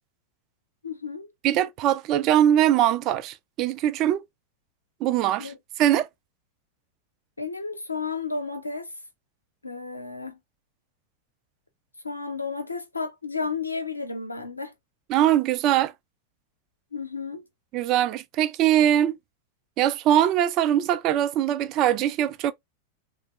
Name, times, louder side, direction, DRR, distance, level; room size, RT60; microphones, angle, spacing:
voice 1, 0.8-1.3 5.4-5.6 7.4-8.9 9.6-10.4 12.0-14.7 16.9-17.5, left 4 dB, 85° left, 0.7 m, -32 dB
voice 2, 1.4-4.2 5.0-5.5 5.8-6.1 15.1-15.9 17.7-19.2 19.8-22.5, right 11 dB, 40° right, 0.4 m, -22 dB
3.4 x 2.0 x 3.1 m
figure-of-eight pair, 90°, 0 cm